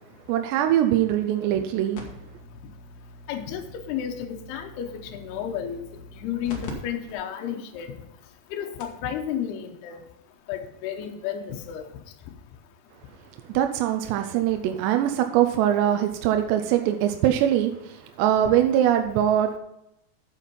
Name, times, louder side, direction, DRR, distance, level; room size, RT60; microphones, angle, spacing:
voice 1, 0.3-2.0 13.5-19.6, right 11 dB, 85° right, 6 dB, 2.8 m, -22 dB
sound 1, 1.9-6.7 7.1-7.2 7.8-7.9 8.5-8.6 8.8-9.1 10.3-10.4, left 2 dB, 55° left, 2.0 m, -43 dB
voice 2, 3.3-8.0 8.5-10.1 10.5-11.8 18.4-18.5, left 9 dB, 75° left, 4 dB, 2.8 m, -32 dB
8.3 x 7.7 x 5.3 m, 0.83 s
omnidirectional pair, 5.0 m